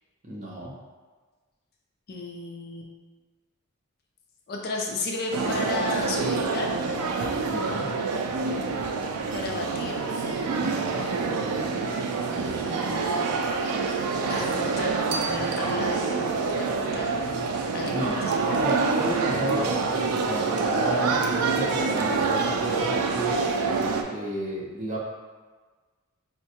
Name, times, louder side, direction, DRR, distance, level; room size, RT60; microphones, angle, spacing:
voice 1, 0.2-0.7 7.5-7.9 10.6-11.0 17.9-18.2 18.5-23.4 24.1-25.0, right 1 dB, 35° right, -4 dB, 0.6 m, -32 dB
voice 2, 2.1-2.9 4.5-6.7 9.3-10.0 12.2-13.4 14.3-17.1 17.7-18.3, left 2 dB, 45° left, 0 dB, 0.4 m, -33 dB
sound 1, 5.3-24.0, right 4 dB, 85° right, 0.4 m, -26 dB
4.5 x 2.1 x 2.8 m, 1.4 s
head